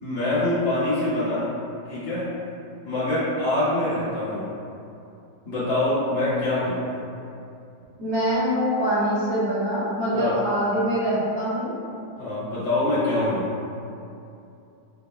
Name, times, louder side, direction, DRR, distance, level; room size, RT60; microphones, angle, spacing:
voice 1, 0.0-1.5 1.9-2.3 2.9-4.5 5.5-6.8 10.1-10.3 12.2-13.5, left 1 dB, 70° left, -11 dB, 1.9 m, -24 dB
voice 2, 8.0-11.7, equal, 70° right, -10 dB, 1.8 m, -24 dB
5.9 x 2.1 x 2.3 m, 2.6 s
omnidirectional pair, 2.1 m